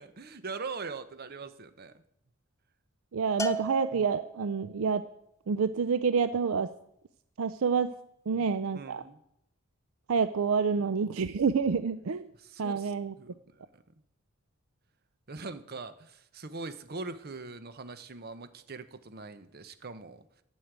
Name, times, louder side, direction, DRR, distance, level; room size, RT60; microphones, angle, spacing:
voice 1, 0.0-2.0 8.3-8.4 8.7-9.2 12.4-13.8 15.3-20.3, right 3 dB, 45° right, 12 dB, 0.8 m, -42 dB
voice 2, 3.1-5.0 5.5-6.7 7.4-7.9 8.3-9.0 10.1-12.3 12.6-13.1, right 5 dB, 70° right, 12 dB, 0.5 m, -28 dB
Bell, 3.4-4.8, right 1 dB, 15° left, 0.6 m, -36 dB
11.5 x 6.4 x 8.9 m, 0.78 s
head